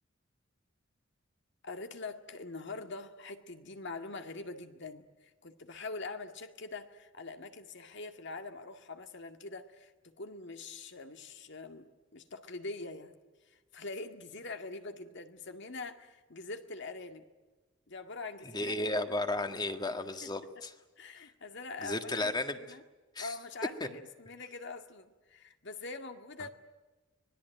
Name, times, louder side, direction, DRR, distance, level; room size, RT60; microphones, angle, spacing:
voice 1, 1.6-13.1 13.5-17.3 17.9-19.1 20.2-20.3 21.0-22.8 23.2-26.5, left 3 dB, 65° left, 6 dB, 2.1 m, -44 dB
voice 2, 18.5-20.7 21.8-22.6 23.2-23.3, left 2 dB, 20° left, 7 dB, 1.7 m, -33 dB
25.0 x 20.5 x 9.2 m, 1.2 s
head